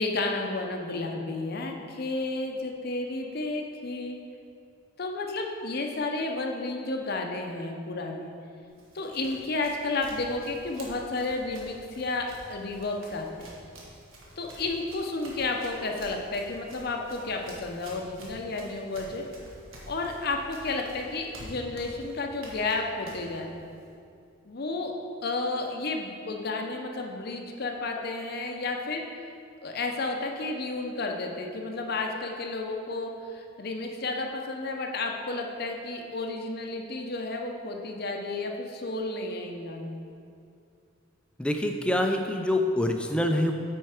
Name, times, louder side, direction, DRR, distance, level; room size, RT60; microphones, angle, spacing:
voice 1, 0.0-4.2 5.0-8.3 8.9-13.5 14.4-19.2 19.9-23.6 24.5-24.9 25.2-29.0 29.6-40.1, left 3 dB, 50° left, 2 dB, 0.6 m, -32 dB
Run, 8.7-23.9, right 1 dB, 70° right, 1.4 m, -49 dB
voice 2, 41.4-43.5, left 1 dB, 5° left, 4 dB, 0.4 m, -25 dB
8.8 x 4.5 x 4.8 m, 2.5 s
head